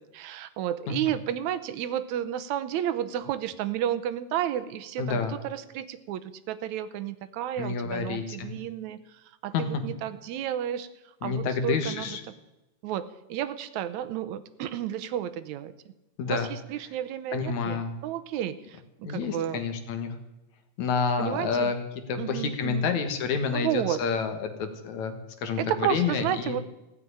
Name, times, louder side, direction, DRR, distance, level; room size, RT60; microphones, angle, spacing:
voice 1, 0.1-5.2 5.4-10.9 11.2-12.2 12.8-15.7 16.3-19.6 21.2-21.7 22.2-22.9 23.5-24.0 25.6-26.7, right 11 dB, 80° right, 13 dB, 2.2 m, -32 dB
voice 2, 5.0-5.3 7.6-8.5 9.5-9.7 11.2-12.2 16.2-16.5 17.3-17.9 19.0-20.1 20.8-21.8 22.1-26.6, left 5 dB, 75° left, 7 dB, 2.9 m, -29 dB
16.0 x 7.6 x 9.9 m, 0.99 s
omnidirectional pair, 3.3 m